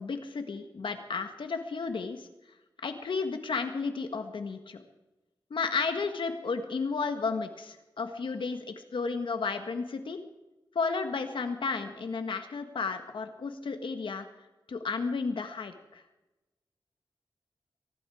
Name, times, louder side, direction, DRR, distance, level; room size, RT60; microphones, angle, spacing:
voice 1, 0.0-2.3 2.8-4.8 5.5-10.2 10.8-14.3 14.7-16.0, left 4 dB, 75° left, 7 dB, 1.6 m, -33 dB
23.0 x 11.5 x 5.0 m, 1.1 s
wide cardioid pair, 95°, 9 cm